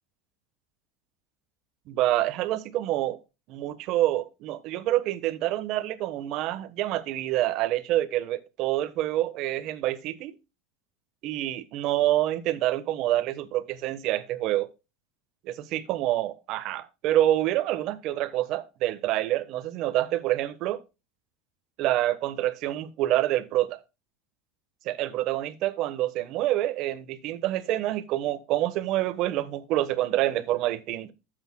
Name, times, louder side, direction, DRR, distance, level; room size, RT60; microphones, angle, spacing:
voice 1, 1.9-3.2 3.5-10.3 11.2-14.7 15.4-20.8 21.8-23.8 24.8-31.1, right 14 dB, 55° right, 1.2 m, -27 dB
12.0 x 8.0 x 2.2 m
supercardioid pair, 120°, 0 cm